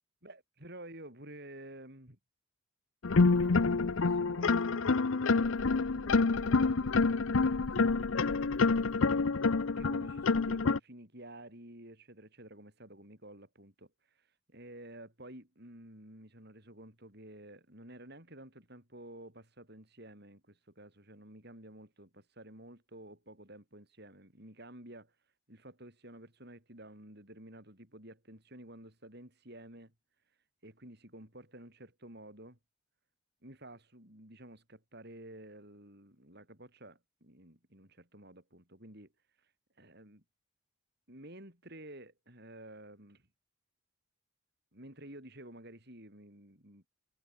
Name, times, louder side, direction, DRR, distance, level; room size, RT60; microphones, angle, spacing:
voice 1, 0.2-2.2 3.1-8.7 9.1-9.2 9.7-25.2 25.5-29.9 30.6-32.6 33.4-39.1 39.4-40.2 41.1-43.3 44.7-46.9, right 1 dB, 50° right, 7.7 m, -52 dB
sound 1, 3.0-10.8, left 4 dB, 70° left, 0.7 m, -27 dB
head